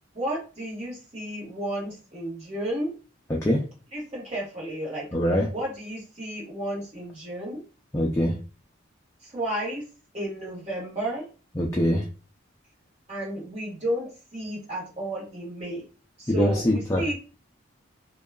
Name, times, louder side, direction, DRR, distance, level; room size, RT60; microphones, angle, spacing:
voice 1, 0.1-2.9 3.9-5.1 5.5-7.6 9.2-9.8 10.1-11.3 13.1-15.8 16.2-17.1, right 1 dB, 30° right, -5 dB, 1.3 m, -32 dB
voice 2, 3.3-3.6 5.1-5.5 7.9-8.3 11.6-12.1 16.3-17.0, equal, 15° left, -2 dB, 0.4 m, -23 dB
2.8 x 2.3 x 2.3 m, 0.34 s
head